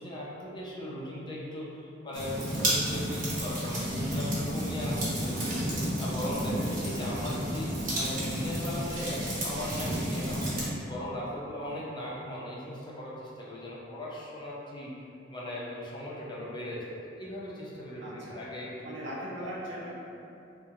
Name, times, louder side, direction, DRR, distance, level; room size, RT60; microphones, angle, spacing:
voice 1, 0.0-5.6 6.0-10.5 10.8-14.9 15.3-19.0 19.4-19.6, left 1 dB, 25° left, -6 dB, 0.5 m, -38 dB
sound 1, 2.1-10.7, equal, 45° right, 0.9 m, -31 dB
voice 2, 18.0-18.4 18.8-19.9, right 1 dB, 70° right, -6 dB, 0.7 m, -40 dB
3.5 x 2.1 x 2.8 m, 2.7 s
head